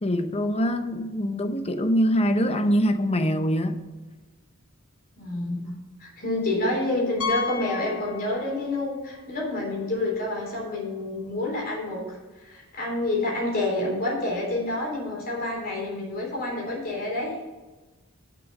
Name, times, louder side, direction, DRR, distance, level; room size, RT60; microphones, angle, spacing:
voice 1, 0.0-3.8, equal, 30° left, 0.7 m, -24 dB
voice 2, 5.2-17.4, left 2 dB, 45° left, 3.7 m, -28 dB
Piano, 7.2-8.8 9.1-9.2 9.8-9.9 10.2-10.3 12.3-12.4, left 5 dB, 75° left, 1.3 m, -32 dB
6.9 x 6.3 x 7.7 m
head